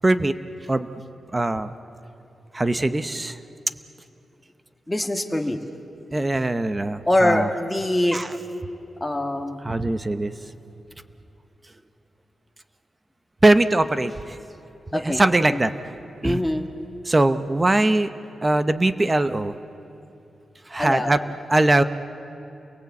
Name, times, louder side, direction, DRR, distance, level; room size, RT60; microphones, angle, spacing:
voice 1, 0.0-0.4 0.7-0.9 1.3-1.7 2.5-3.4 6.1-7.5 8.1-8.3 9.6-10.3 13.4-14.4 14.9-15.7 16.2-16.4 17.1-18.1 18.4-19.6 20.7-21.2 21.5-21.8, right 2 dB, 20° right, 11 dB, 0.8 m, -21 dB
voice 2, 4.9-5.6 7.1-8.2 9.0-9.6 14.9-15.2 15.5-15.6 16.2-16.7 20.8-21.2, left 1 dB, 5° left, 3 dB, 1.6 m, -23 dB
30.0 x 22.5 x 8.4 m, 2.9 s
wide cardioid pair, 155°, 0 cm